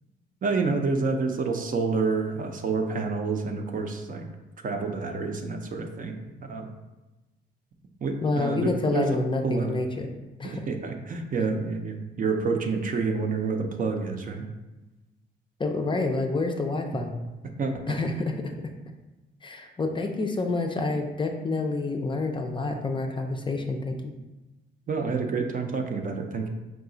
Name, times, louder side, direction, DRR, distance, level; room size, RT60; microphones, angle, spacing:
voice 1, 0.4-4.2 4.6-6.2 6.4-6.7 8.0-9.2 9.4-9.8 10.4-14.4 17.6-17.7 24.9-26.5, right 4 dB, 45° right, 4 dB, 0.5 m, -28 dB
voice 2, 8.2-10.1 10.4-10.6 15.6-17.2 17.9-18.5 19.4-24.1, left 3 dB, 25° left, 3 dB, 0.4 m, -28 dB
4.8 x 2.3 x 3.8 m, 1.1 s
cardioid pair, 90°, 20 cm